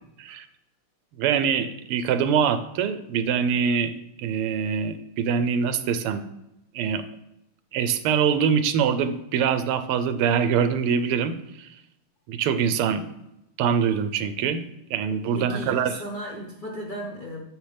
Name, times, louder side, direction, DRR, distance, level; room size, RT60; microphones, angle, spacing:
voice 1, 1.2-3.9 4.2-6.2 6.7-7.0 7.7-11.7 12.3-13.0 13.6-14.6 14.9-16.0, right 7 dB, 85° right, 10 dB, 1.6 m, -24 dB
voice 2, 15.3-17.5, right 1 dB, 30° left, -3 dB, 0.9 m, -35 dB
9.4 x 6.9 x 3.4 m, 0.84 s
omnidirectional pair, 2.4 m